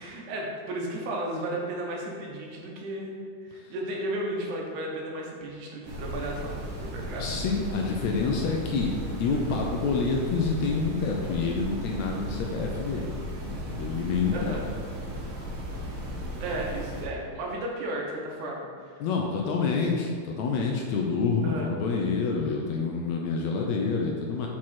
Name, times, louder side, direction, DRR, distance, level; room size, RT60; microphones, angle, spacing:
voice 1, 0.0-7.5 14.3-14.6 16.4-18.7 21.4-21.7, right 1 dB, 75° right, -2 dB, 2.5 m, -34 dB
sound 1, 5.8-17.0, equal, 60° right, 1.4 m, -36 dB
voice 2, 7.2-8.9 9.2-13.1 13.4-14.6 19.0-24.5, left 4 dB, 75° left, 0 dB, 1.7 m, -27 dB
6.1 x 4.9 x 4.3 m, 2.2 s
omnidirectional pair, 3.6 m